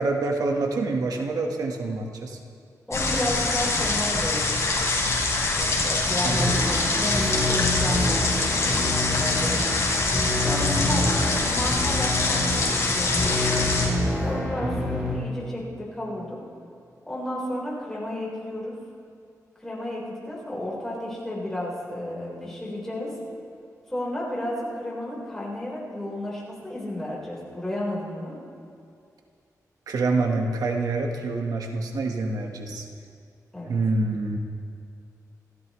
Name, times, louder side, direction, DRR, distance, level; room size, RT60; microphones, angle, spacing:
voice 1, 0.0-2.4 6.2-6.5 10.6-11.1 14.6-14.9 29.9-32.9 33.6-34.4, right 3 dB, 85° right, 2 dB, 1.5 m, -27 dB
sound 1, 2.9-13.9, left 3 dB, 50° left, 4.0 m, -24 dB
voice 2, 2.9-4.6 5.5-9.7 10.4-11.0 11.5-13.6 14.2-16.4 17.1-18.7 19.6-23.1 23.9-28.4 33.5-33.8, left 1 dB, 5° left, -6 dB, 4.2 m, -32 dB
sound 2, 6.2-15.2, left 1 dB, 10° right, 4.6 m, -27 dB
27.5 x 14.5 x 3.2 m, 2.4 s
wide cardioid pair, 170°, 6 cm